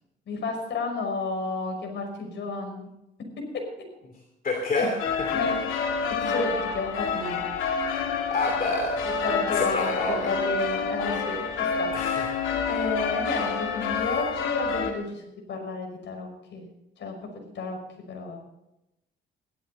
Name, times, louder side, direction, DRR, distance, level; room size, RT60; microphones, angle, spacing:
voice 1, 0.3-2.9 3.5-3.6 4.7-4.9 5.3-5.5 6.1-7.4 9.2-11.9 12.7-15.2 15.5-16.7 17.0-17.2 17.5-17.8 18.1-18.4, left 3 dB, 65° left, 3 dB, 5.8 m, -31 dB
voice 2, 4.4-5.3 8.3-9.0 9.5-10.3 11.9-12.4, left 2 dB, 45° left, 3 dB, 2.8 m, -28 dB
sound 1, 5.0-14.9, left 5 dB, 85° left, 2.4 m, -28 dB
16.5 x 13.5 x 4.2 m, 0.89 s
cardioid pair, 90°, 20 cm